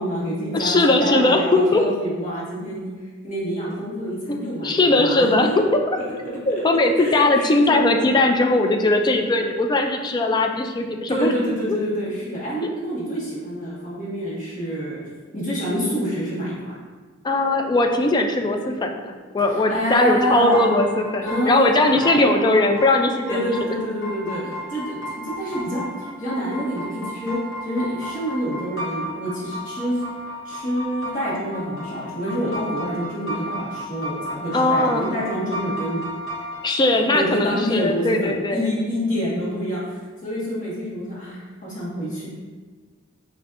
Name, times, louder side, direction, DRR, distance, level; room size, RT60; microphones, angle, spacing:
voice 1, 0.0-2.9 3.2-5.5 6.5-6.6 7.0-7.8 11.1-15.0 15.3-16.8 19.5-20.7 21.2-22.6 23.3-30.0 30.4-36.0 37.1-42.3, equal, 40° left, -7 dB, 1.4 m, -27 dB
voice 2, 0.5-1.8 4.3-6.0 6.5-11.3 11.7-11.8 17.2-23.8 34.5-35.1 36.6-38.7, left 2 dB, 20° left, 4 dB, 0.3 m, -19 dB
sound 1, 20.3-36.7, equal, 65° left, 0.9 m, -33 dB
6.0 x 2.6 x 2.4 m, 1.4 s
head